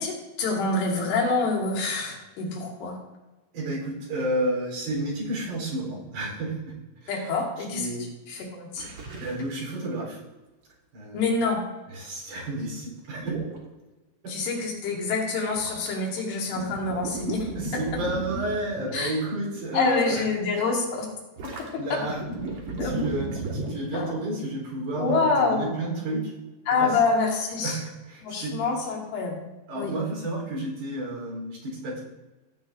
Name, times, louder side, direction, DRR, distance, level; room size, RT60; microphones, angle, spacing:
voice 1, 0.0-3.0 7.1-7.9 8.3-8.9 11.1-11.6 14.3-17.5 18.9-19.1 19.7-21.1 21.9-22.0 22.8-22.9 23.9-24.1 25.0-25.7 26.7-27.8 28.2-29.5 29.8-29.9, left 3 dB, 85° left, -1 dB, 4.0 m, -26 dB
voice 2, 3.5-6.5 7.0-7.3 7.7-8.1 9.2-10.2 10.9-11.3 11.9-13.3 17.6-20.2 21.8-22.2 22.8-26.2 26.7-27.0 27.6-28.5 29.7-32.0, right 1 dB, 70° right, -3 dB, 5.9 m, -31 dB
sound 1, 8.8-9.4 10.0-10.1 13.2-13.6 15.6-16.2 16.5-19.2 19.6-19.9 21.4-24.1, right 2 dB, 50° right, 2.0 m, -34 dB
15.5 x 9.6 x 2.6 m, 1.1 s
omnidirectional pair, 4.5 m